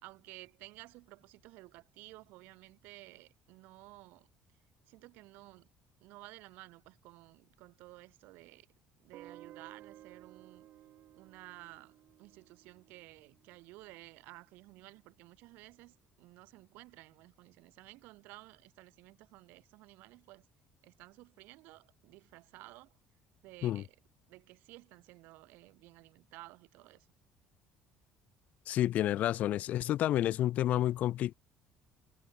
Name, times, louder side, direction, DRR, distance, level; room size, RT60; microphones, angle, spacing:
voice 1, 0.0-4.3 4.9-5.7 6.0-8.7 9.0-10.7 11.1-20.5 20.8-22.9 23.4-24.0 24.3-27.1, right 21 dB, 80° right, 3.5 m, -54 dB
Guitar, 9.1-14.0, right 13 dB, 55° right, 2.0 m, -56 dB
voice 2, 28.7-31.3, left 13 dB, 50° left, 0.3 m, -30 dB
cardioid pair, 140°, 3 cm